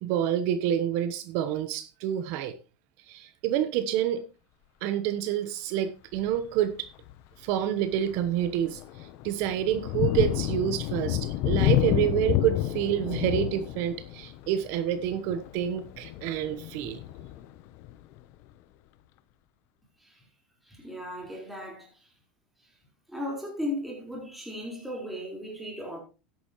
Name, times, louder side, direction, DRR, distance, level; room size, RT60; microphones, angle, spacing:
voice 1, 0.0-2.5 3.1-4.2 4.8-6.9 7.4-8.8 9.2-17.0, right 10 dB, 60° right, 1.0 m, -28 dB
Thunder, 6.1-6.5 7.0-7.2 7.6-18.2, left 14 dB, 60° left, 0.8 m, -30 dB
voice 2, 20.6-22.1 22.6-22.7 23.1-26.0, left 1 dB, ahead, 4.4 m, -36 dB
13.0 x 10.0 x 3.1 m
supercardioid pair, 110°, 5 cm